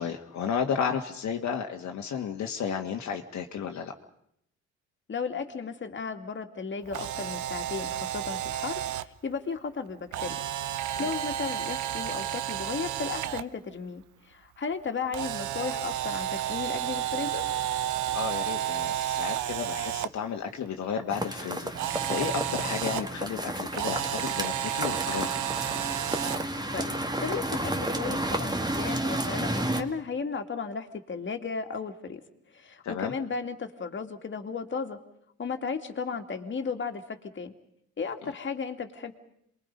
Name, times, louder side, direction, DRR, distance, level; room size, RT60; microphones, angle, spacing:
voice 1, 0.0-3.9 10.9-11.1 18.1-25.4 32.8-33.1, left 7 dB, 65° left, 3 dB, 1.7 m, -33 dB
voice 2, 5.1-10.4 11.0-17.4 26.7-26.9 27.2-32.2 32.5-35.0 35.4-37.5 38.0-39.1, left 5 dB, 40° left, 5 dB, 2.3 m, -35 dB
Camera, 6.8-9.0 10.1-13.4 15.1-20.1 21.7-23.0 23.7-26.4, right 12 dB, 75° right, 0.9 m, -31 dB
sound 1, 21.1-29.8, right 1 dB, 15° right, 2.2 m, -32 dB
28.0 x 22.0 x 5.4 m, 0.75 s
cardioid pair, 90°, 30 cm